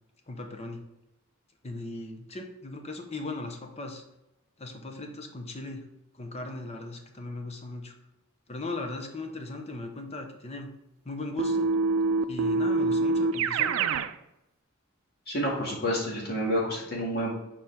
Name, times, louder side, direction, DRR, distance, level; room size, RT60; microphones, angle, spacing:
voice 1, 0.3-0.8 1.6-4.0 4.6-5.8 6.2-7.9 8.5-10.7 11.0-11.7 12.3-13.8, left 2 dB, 30° left, 4 dB, 0.8 m, -38 dB
Keyboard (musical), 11.4-14.1, right 3 dB, 70° right, 0.4 m, -25 dB
voice 2, 15.3-17.3, equal, 50° left, -3 dB, 2.0 m, -29 dB
7.1 x 4.4 x 3.5 m, 0.89 s
head